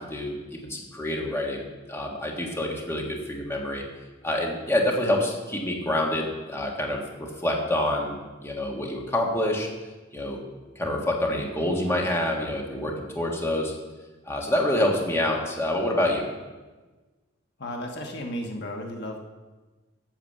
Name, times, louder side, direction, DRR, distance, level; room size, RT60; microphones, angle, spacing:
voice 1, 0.0-3.8 4.2-8.2 8.4-9.7 10.1-10.4 10.7-13.7 14.2-16.2, left 1 dB, 15° left, -1 dB, 1.6 m, -27 dB
voice 2, 17.6-19.2, equal, 60° left, 2 dB, 1.2 m, -34 dB
9.1 x 7.3 x 7.5 m, 1.2 s
head